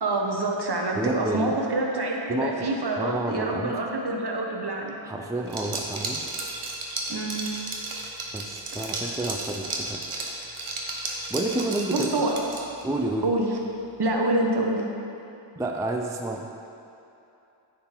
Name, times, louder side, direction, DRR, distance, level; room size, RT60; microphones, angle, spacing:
voice 1, 0.0-5.0 7.1-7.5 11.9-12.4 13.2-13.6 14.0-14.8, right 2 dB, 55° right, 0 dB, 1.0 m, -26 dB
voice 2, 1.0-1.6 2.3-2.7 3.0-3.8 5.0-6.2 8.3-10.0 11.3-12.1 12.8-13.3 15.5-16.5, right 2 dB, 5° right, 2 dB, 0.4 m, -29 dB
Liquid, 5.5-12.9, right 2 dB, 80° right, 0.9 m, -33 dB
9.2 x 4.0 x 4.4 m, 2.8 s
wide cardioid pair, 60°, 49 cm